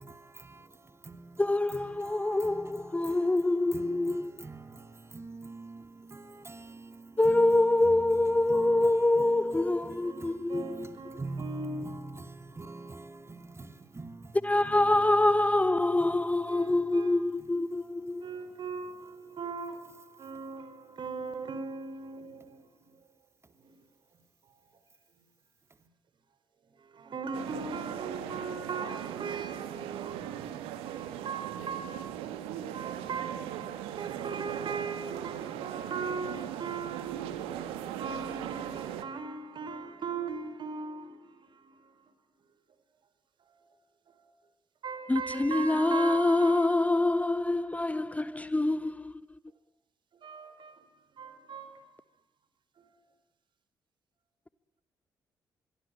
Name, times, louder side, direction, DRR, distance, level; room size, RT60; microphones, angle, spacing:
voice 1, 0.0-15.3 16.0-16.9 17.4-18.3, right 3 dB, 30° right, 2.5 m, -45 dB
voice 2, 1.4-4.3 7.2-10.6 14.4-18.2 45.1-49.1, left 2 dB, 15° left, 1.0 m, -25 dB
voice 3, 9.9-12.1 15.5-15.7 16.5-17.3 18.2-23.1 23.5-23.9 26.7-30.5 30.9-41.9 43.5-43.7 44.1-44.4 44.8-47.2 47.9-48.2 50.1-52.0 52.8-53.0, right 4 dB, 55° right, 4.6 m, -40 dB
sound 1, 27.3-39.0, right 11 dB, 75° right, 2.0 m, -39 dB
25.5 x 23.0 x 10.0 m
hypercardioid pair, 40°, 10 cm